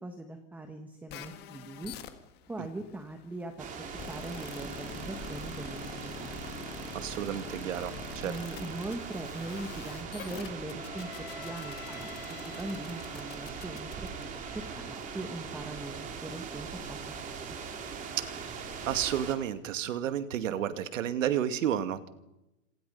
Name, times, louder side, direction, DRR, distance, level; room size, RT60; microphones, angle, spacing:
voice 1, 0.0-1.9 2.5-3.5 4.1-6.4 8.2-11.1 11.3-14.5 14.7-17.4, right 2 dB, 5° right, 6 dB, 1.3 m, -41 dB
sound 1, 1.1-14.7, left 9 dB, 25° left, 1.9 m, -46 dB
sound 2, 3.6-19.4, right 5 dB, 20° right, 3.0 m, -41 dB
voice 2, 6.9-8.4 18.3-22.1, right 10 dB, 75° right, 10 dB, 2.3 m, -32 dB
27.0 x 26.5 x 5.5 m, 0.92 s
supercardioid pair, 170°, 39 cm